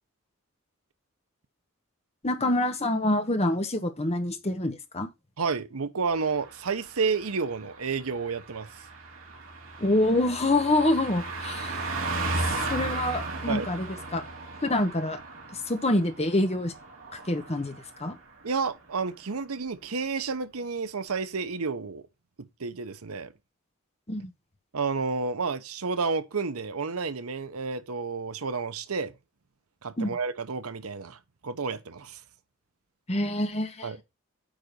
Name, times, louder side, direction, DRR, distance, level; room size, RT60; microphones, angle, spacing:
voice 1, 2.2-5.1 9.8-11.8 12.7-13.9 14.1-14.2 14.6-15.2 15.7-16.7 17.3-18.1 24.1-24.3 30.0-30.1 33.1-33.9, left 1 dB, 30° left, 1.2 m, -26 dB
voice 2, 5.4-8.8 13.5-13.7 18.4-22.0 22.6-23.3 24.7-29.1 29.8-32.2 33.8-34.0, right 4 dB, 90° right, 0.9 m, -30 dB
Car passing by, 6.2-18.1 18.4-18.6, right 2 dB, 65° right, 2.5 m, -36 dB
9.2 x 4.0 x 5.1 m
head